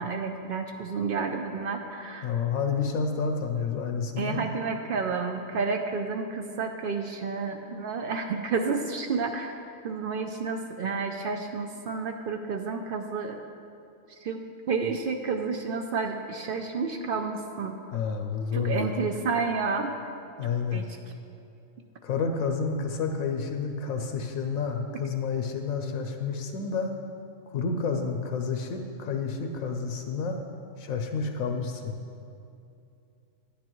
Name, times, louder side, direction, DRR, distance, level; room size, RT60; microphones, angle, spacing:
voice 1, 0.0-2.3 4.2-9.5 9.8-13.4 14.2-14.4 14.7-17.8 18.5-20.0 20.7-20.9, right 4 dB, 65° right, 4 dB, 0.5 m, -30 dB
voice 2, 2.2-4.5 17.9-19.1 20.4-20.9 22.0-26.9 27.5-30.4 30.8-32.0, left 5 dB, 80° left, 5 dB, 1.1 m, -30 dB
10.5 x 10.0 x 3.0 m, 2.6 s
omnidirectional pair, 1.4 m